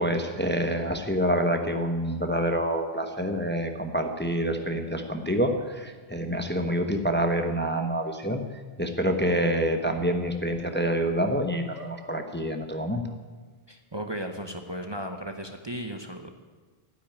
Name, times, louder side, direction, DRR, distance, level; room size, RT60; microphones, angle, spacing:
voice 1, 0.0-8.4 8.8-13.0, equal, 10° left, 5 dB, 1.0 m, -27 dB
sound 1, 7.6-7.7 8.2-8.3 9.9-10.6 11.1-11.2 11.7-12.0 12.8-12.9 13.1-13.2, left 2 dB, 30° left, 2.9 m, -49 dB
voice 2, 13.7-16.3, equal, 25° right, 4 dB, 1.0 m, -35 dB
12.5 x 10.0 x 8.9 m, 1.4 s
omnidirectional pair, 1.0 m